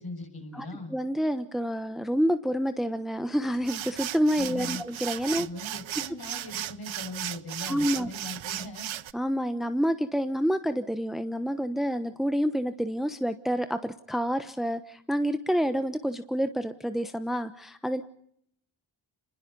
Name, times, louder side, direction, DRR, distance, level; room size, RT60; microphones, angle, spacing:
voice 1, 0.0-1.0 4.4-4.8 5.3-8.9, left 2 dB, 50° left, 4 dB, 6.8 m, -40 dB
voice 2, 0.5-5.5 7.7-8.1 9.1-18.0, equal, ahead, 10 dB, 1.1 m, -28 dB
sound 1, 3.5-9.1, right 12 dB, 80° right, 0.8 m, -36 dB
26.5 x 21.0 x 5.4 m, 0.70 s
cardioid pair, 60°, 46 cm